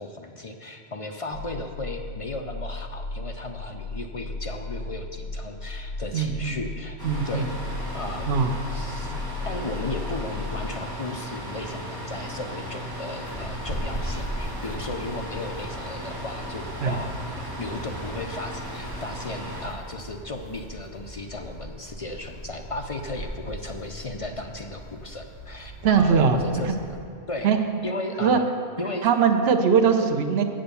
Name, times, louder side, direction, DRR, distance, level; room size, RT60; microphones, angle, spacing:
voice 1, 0.0-7.0 7.2-7.5 7.9-8.3 8.7-9.2 9.4-26.8 27.3-27.5 27.8-28.4 28.8-29.1, left 2 dB, 45° left, 4 dB, 0.5 m, -35 dB
sound 1, 1.3-10.7, left 3 dB, 90° left, 0.9 m, -35 dB
voice 2, 6.1-6.5 7.0-7.5 8.3-8.5 16.8-17.0 25.8-26.4 27.4-27.6 28.2-28.4 29.0-30.4, right 6 dB, 70° right, 5 dB, 0.9 m, -20 dB
sound 2, 7.0-19.7, equal, 20° right, 2.0 m, -36 dB
sound 3, 13.2-27.0, equal, 20° left, 1.9 m, -39 dB
7.8 x 7.6 x 6.8 m, 2.4 s
omnidirectional pair, 1.1 m